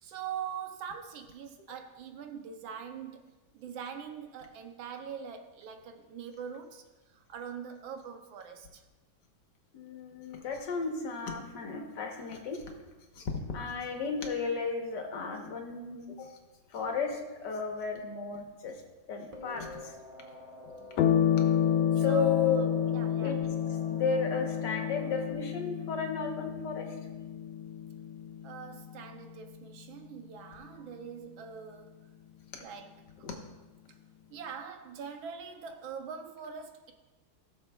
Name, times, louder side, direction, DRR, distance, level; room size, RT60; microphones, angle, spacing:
voice 1, 0.0-6.8 7.1-8.8 13.2-13.3 20.7-21.1 21.9-23.5 28.4-31.9 32.6-33.0 34.3-36.9, right 6 dB, 75° right, 1.5 m, -43 dB
voice 2, 9.7-12.6 13.2-13.3 13.5-16.3 16.7-18.8 19.1-19.9 22.0-22.6 23.2-23.4 23.9-26.9 33.2-33.4, left 5 dB, 60° left, 1.5 m, -33 dB
sound 1, 19.3-25.3, left 1 dB, 30° right, 0.7 m, -46 dB
sound 2, 21.0-29.8, left 9 dB, 80° left, 1.4 m, -30 dB
17.5 x 6.8 x 2.3 m
omnidirectional pair, 2.2 m